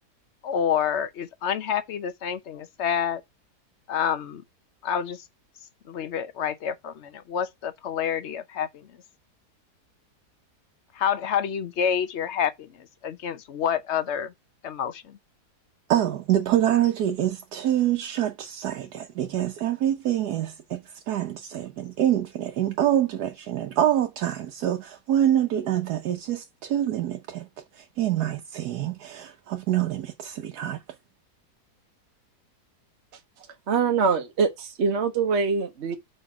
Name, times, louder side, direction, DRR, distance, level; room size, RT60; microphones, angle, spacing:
voice 1, 0.4-3.2 3.9-4.4 4.8-5.2 5.8-9.0 10.9-14.3 14.6-15.2, left 8 dB, 55° left, 0.8 m, -28 dB
voice 2, 15.9-27.5 27.7-30.8, right 11 dB, 75° right, 1.3 m, -26 dB
voice 3, 33.4-36.0, right 5 dB, 50° right, 1.0 m, -24 dB
5.1 x 4.4 x 5.9 m
omnidirectional pair, 1.7 m